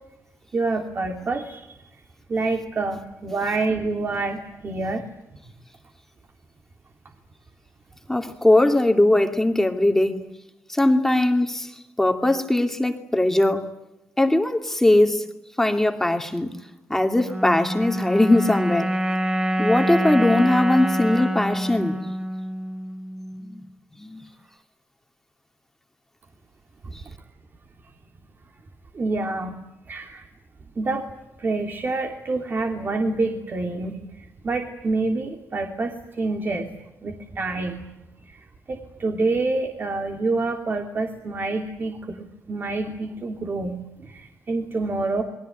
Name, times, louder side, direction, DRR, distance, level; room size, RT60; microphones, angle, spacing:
voice 1, 0.5-1.7 2.3-5.0 26.8-26.9 28.9-29.6 29.9-30.2 30.8-31.1 31.4-36.7 37.0-37.9 38.3-45.2, right 3 dB, 35° right, 4 dB, 2.8 m, -27 dB
voice 2, 8.1-10.2 10.7-11.7 12.0-13.7 14.2-15.2 15.6-16.5 16.9-18.9 19.6-22.0 23.4-23.6 23.9-24.2, left 1 dB, 5° left, 5 dB, 2.5 m, -20 dB
sound 1, 17.2-23.6, equal, 20° right, 2.4 m, -26 dB
28.0 x 22.5 x 9.2 m, 0.90 s
wide cardioid pair, 135°, 6 cm